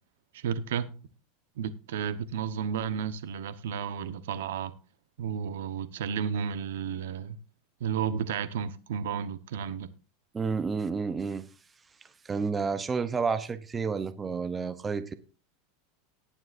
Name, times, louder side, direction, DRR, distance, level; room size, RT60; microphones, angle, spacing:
voice 1, 0.3-1.0 1.6-4.7 5.2-7.4 7.8-9.9, right 7 dB, 85° right, 1.0 m, -32 dB
voice 2, 10.3-11.5 12.2-15.1, right 5 dB, 15° right, 0.7 m, -30 dB
18.5 x 9.0 x 2.6 m
supercardioid pair, 145°, 0 cm